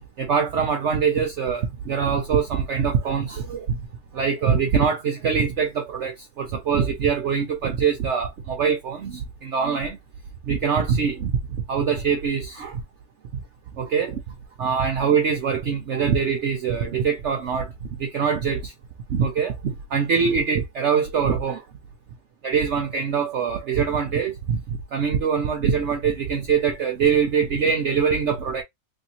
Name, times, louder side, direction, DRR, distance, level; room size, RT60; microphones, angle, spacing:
voice 1, 0.2-3.8 4.1-10.0 10.5-11.3 11.7-12.8 13.3-13.4 13.8-18.7 19.1-21.6 22.4-28.6, right 6 dB, 60° right, 0.8 m, -23 dB
3.4 x 2.8 x 2.7 m
omnidirectional pair, 1.7 m